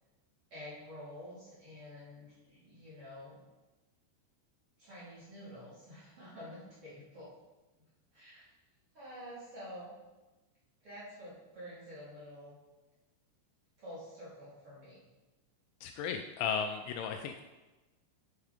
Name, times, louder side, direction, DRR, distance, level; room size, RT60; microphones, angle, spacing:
voice 1, 0.5-3.4 4.8-7.3 7.7-7.8 8.1-8.5 8.9-9.9 10.8-12.6 13.8-15.0, equal, 35° right, -10 dB, 3.2 m, -49 dB
voice 2, 15.8-17.4, left 7 dB, 85° left, 5 dB, 2.8 m, -35 dB
8.2 x 5.9 x 5.0 m, 1.1 s
omnidirectional pair, 5.6 m